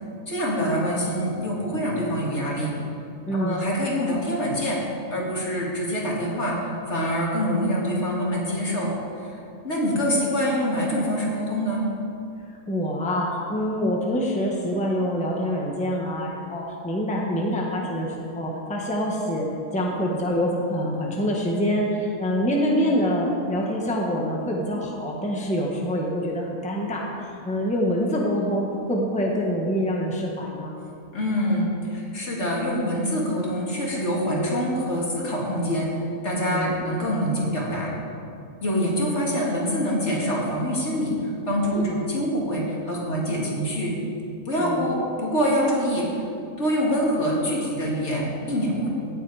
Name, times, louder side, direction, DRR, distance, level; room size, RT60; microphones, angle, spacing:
voice 1, 0.3-2.8 3.3-4.8 5.1-8.9 9.2-9.3 9.6-11.8 31.1-35.9 36.2-37.9 38.6-43.9 44.5-46.2 46.6-48.9, equal, 50° left, -4 dB, 2.6 m, -25 dB
voice 2, 3.3-3.6 12.7-19.5 19.7-30.7 36.5-36.8 41.7-42.1 44.6-44.9, equal, 5° left, -2 dB, 1.3 m, -25 dB
17.0 x 8.0 x 4.9 m, 2.6 s
omnidirectional pair, 1.5 m